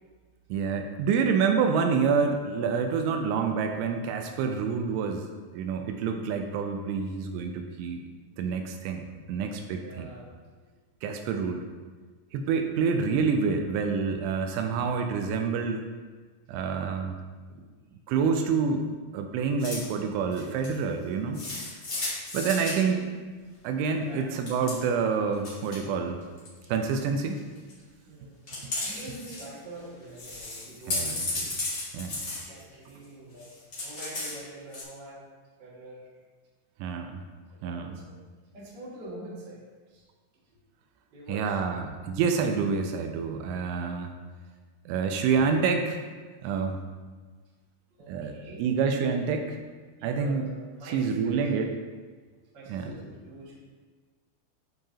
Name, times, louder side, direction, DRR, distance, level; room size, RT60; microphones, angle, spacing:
voice 1, 0.5-8.0 8.4-10.1 11.0-11.6 12.3-15.9 16.5-17.2 18.1-18.9 19.1-21.4 22.3-23.0 23.6-26.2 26.7-27.4 28.6-28.7 30.9-31.7 31.9-32.2 36.8-37.2 37.6-38.0 41.3-44.1 44.9-46.0 46.4-46.8 48.1-49.6 50.0-50.5 50.9-51.7 52.7-53.0, right 5 dB, 85° right, 5 dB, 3.0 m, -27 dB
voice 2, 9.8-10.3 12.5-12.7 22.7-23.0 24.0-24.3 24.6-24.7 28.0-28.5 28.8-31.2 32.2-35.3 35.6-36.1 37.5-38.2 38.5-39.6 39.9-40.0 41.1-41.6 48.0-48.6 50.0-51.6 52.5-53.6, right 1 dB, 35° right, -8 dB, 1.9 m, -44 dB
sound 1, 19.6-19.9 20.3-20.8 21.3-22.8 24.3-24.8 25.3-25.8 26.2-26.7 27.3-27.7 28.5-29.5 29.7-29.8 30.1-33.0 33.4-34.4 34.7-34.8, left 2 dB, 65° left, 0.9 m, -34 dB
10.5 x 4.7 x 2.8 m, 1.4 s
omnidirectional pair, 5.4 m